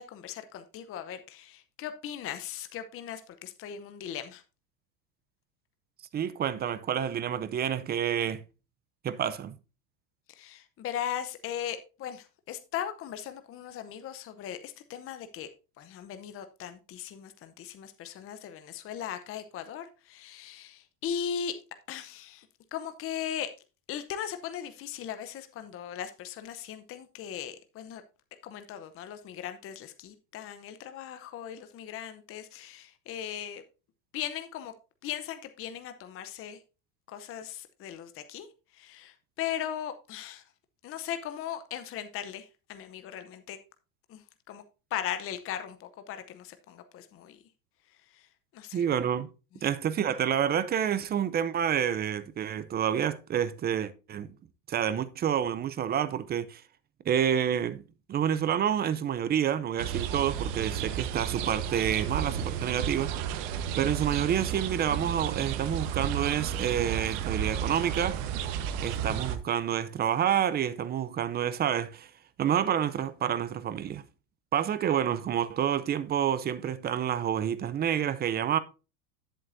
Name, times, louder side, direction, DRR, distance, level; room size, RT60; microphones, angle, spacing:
voice 1, 0.0-4.4 10.3-15.5 15.8-21.5 21.9-23.5 23.9-28.0 28.4-33.6 34.1-34.7 35.0-36.6 37.1-40.4 40.8-43.6 44.1-44.6 44.9-47.4 47.9-48.8, left 9 dB, 30° left, 0.7 m, -38 dB
voice 2, 6.1-8.4 9.0-9.6 48.7-49.3 49.6-54.3 54.7-56.6 57.1-57.8 58.1-63.1 63.8-68.2 68.8-72.1 72.4-74.0 74.5-78.6, right 9 dB, 20° right, 0.5 m, -28 dB
sound 1, 59.8-69.4, right 9 dB, 65° right, 1.3 m, -32 dB
10.5 x 7.6 x 2.6 m
supercardioid pair, 120°, 48 cm